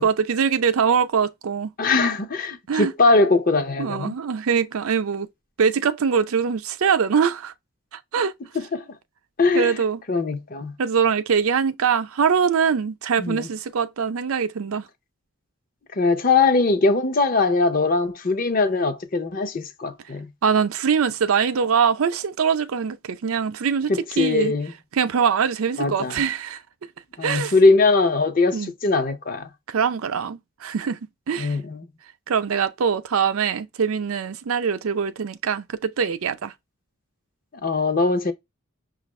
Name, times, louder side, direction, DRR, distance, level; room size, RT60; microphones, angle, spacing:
voice 1, 0.0-1.7 2.7-2.9 3.8-5.3 5.6-7.5 7.9-8.3 9.5-10.0 10.8-14.9 20.4-24.5 24.9-26.6 27.2-27.5 28.5-28.7 29.7-31.0 31.3-31.6 32.3-36.5, right 6 dB, 75° right, 0.5 m, -23 dB
voice 2, 1.8-4.2 8.5-8.8 9.4-9.7 10.1-10.7 13.2-13.5 15.9-20.3 23.9-24.7 25.8-26.2 27.2-29.5 31.4-31.9 37.6-38.3, left 3 dB, 40° left, 0.6 m, -21 dB
5.9 x 2.5 x 3.1 m
head